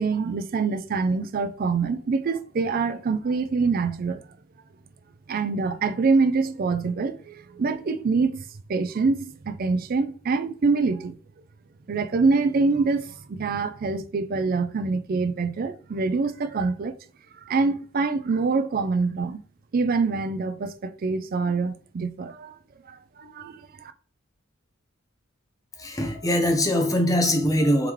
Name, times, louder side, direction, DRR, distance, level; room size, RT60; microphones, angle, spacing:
voice 1, 0.0-4.2 5.3-8.4 8.7-11.1 11.9-16.9 17.5-19.4 19.7-22.5 22.9-23.9, right 4 dB, 45° right, 0.4 m, -25 dB
voice 2, 25.8-27.9, left 1 dB, 15° left, 0.7 m, -22 dB
3.6 x 3.2 x 3.0 m
head